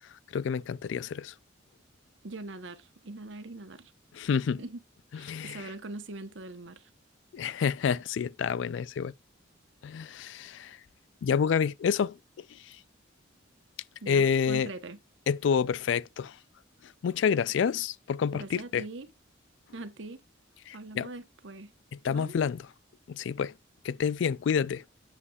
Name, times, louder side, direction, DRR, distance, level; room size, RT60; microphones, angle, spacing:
voice 1, 0.3-1.3 4.1-4.6 5.1-5.7 7.3-9.1 9.8-10.8 11.2-12.8 14.1-14.7 15.3-16.4 16.8-18.8 20.7-21.1 22.0-22.7 23.1-23.5 23.8-24.8, left 6 dB, 70° left, 0.3 m, -28 dB
voice 2, 2.2-3.9 4.6-4.8 5.1-6.9 14.0-15.0 18.3-19.1 19.7-20.2 20.7-21.7 22.1-22.4, right 2 dB, 75° right, 1.0 m, -42 dB
8.1 x 7.5 x 2.4 m
head